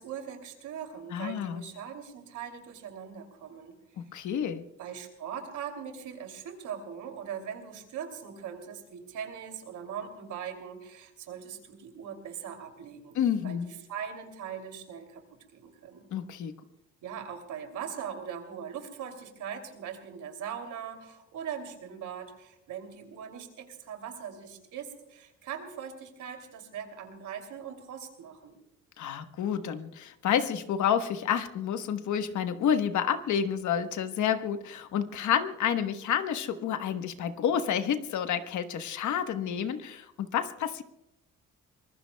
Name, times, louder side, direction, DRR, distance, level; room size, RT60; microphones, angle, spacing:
voice 1, 0.0-3.7 4.8-13.2 13.4-15.2 15.5-16.1 17.0-28.6, right 8 dB, 80° right, 5 dB, 2.9 m, -40 dB
voice 2, 1.1-1.7 4.0-4.7 13.1-13.7 16.1-16.6 29.0-40.8, left 8 dB, 75° left, 9 dB, 1.2 m, -29 dB
24.5 x 20.5 x 2.3 m, 0.85 s
cardioid pair, 90°, 30 cm